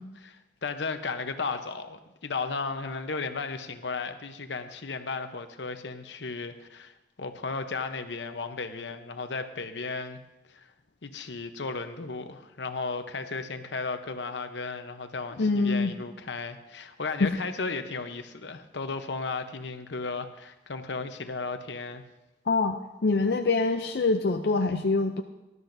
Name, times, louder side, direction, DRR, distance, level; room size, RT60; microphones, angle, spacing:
voice 1, 0.2-10.2 10.5-10.7 11.0-22.0, left 4 dB, 85° left, 8 dB, 0.9 m, -35 dB
voice 2, 15.4-15.9 17.2-17.3 22.5-25.2, left 3 dB, 65° left, 5 dB, 0.5 m, -25 dB
19.0 x 12.5 x 2.7 m, 1.0 s
head